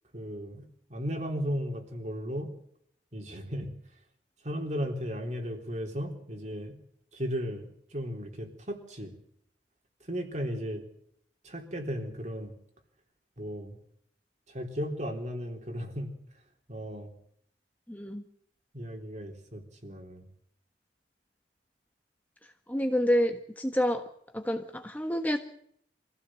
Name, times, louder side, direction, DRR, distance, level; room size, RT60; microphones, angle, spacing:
voice 1, 0.1-2.5 3.1-3.7 4.4-6.8 7.1-9.1 10.1-10.9 11.4-12.5 13.4-13.8 14.5-16.1 16.7-17.1 18.7-20.3, equal, 40° right, 3 dB, 3.8 m, -35 dB
voice 2, 17.9-18.2 22.7-24.0 24.3-25.4, equal, 10° left, 5 dB, 1.4 m, -28 dB
25.0 x 16.0 x 7.7 m, 0.68 s
head